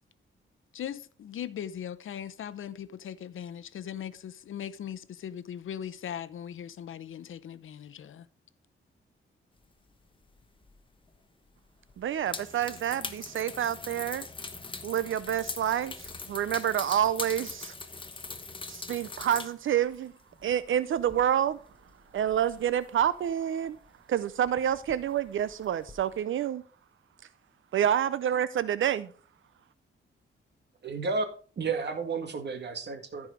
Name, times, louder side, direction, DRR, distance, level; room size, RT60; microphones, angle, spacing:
voice 1, 0.7-8.3, left 9 dB, 75° left, 0.7 m, -39 dB
sound 1, 10.4-10.8 11.0-11.2 11.9-19.6 19.8-23.3 23.7-23.9 24.2-26.1, left 3 dB, 25° left, 1.1 m, -42 dB
voice 2, 12.0-14.2 14.8-17.7 18.7-20.1 20.4-21.6 22.1-23.8 24.1-26.6 27.7-29.1, right 10 dB, 70° right, 0.5 m, -28 dB
voice 3, 30.8-31.3 31.6-33.3, right 4 dB, 55° right, 2.0 m, -32 dB
14.5 x 4.9 x 4.9 m
wide cardioid pair, 115°, 21 cm